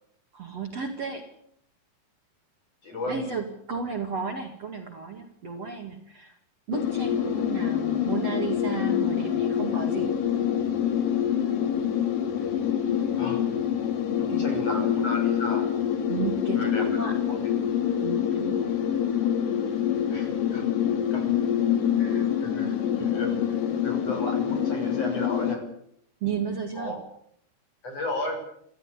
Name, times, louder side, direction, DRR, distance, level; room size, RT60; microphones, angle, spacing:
voice 1, 0.3-1.3 3.1-6.4 6.7-10.1 14.3-14.9 16.1-17.2 18.0-18.6 26.2-27.0, right 5 dB, 45° right, 3 dB, 2.7 m, -33 dB
voice 2, 2.8-3.2 13.2-13.5 14.2-15.7 16.5-17.1 20.1-20.7 21.1-21.4 22.0-25.7 26.8-27.0 27.8-28.4, left 1 dB, 40° left, 4 dB, 7.3 m, -34 dB
sound 1, 6.7-25.6, left 9 dB, 60° left, 4.0 m, -26 dB
25.5 x 16.0 x 9.8 m, 0.71 s
omnidirectional pair, 4.6 m